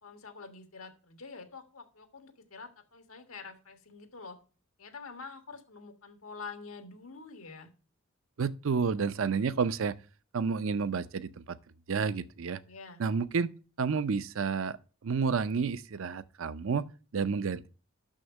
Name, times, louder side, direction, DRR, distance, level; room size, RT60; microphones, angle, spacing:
voice 1, 0.0-4.4 4.8-7.7 12.6-13.0, left 4 dB, 90° left, 1.5 m, -47 dB
voice 2, 8.4-10.0 10.3-11.6 11.9-12.6 13.0-13.5 13.8-14.8 15.0-16.8 17.1-17.7, right 5 dB, 65° right, 0.5 m, -30 dB
6.4 x 6.4 x 6.9 m
head